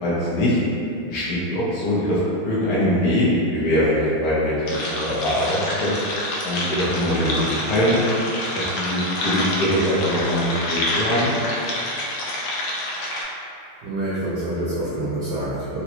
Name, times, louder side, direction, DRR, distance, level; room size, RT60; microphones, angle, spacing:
voice 1, 0.0-0.6 1.1-2.2 2.4-3.3 3.5-4.5 4.8-6.0 6.4-7.4 7.7-8.0 8.5-11.3, left 1 dB, 65° left, -9 dB, 1.1 m, -22 dB
sound 1, 4.7-13.2, left 1 dB, 85° left, 1.5 m, -27 dB
voice 2, 13.8-15.8, right 1 dB, 75° right, -9 dB, 0.9 m, -26 dB
3.9 x 2.2 x 2.9 m, 2.6 s
omnidirectional pair, 2.4 m